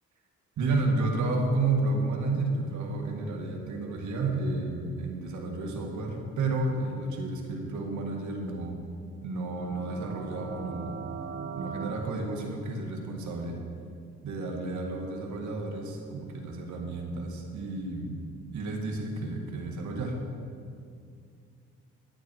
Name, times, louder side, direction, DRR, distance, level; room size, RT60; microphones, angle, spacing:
voice 1, 0.6-8.8 9.2-11.0 11.6-13.6 14.2-18.2 18.5-20.1, right 2 dB, 75° right, 1 dB, 2.0 m, -31 dB
sound 1, 9.4-11.9, right 6 dB, 40° right, 0.9 m, -39 dB
12.0 x 9.2 x 4.7 m, 2.4 s
cardioid pair, 90°, 30 cm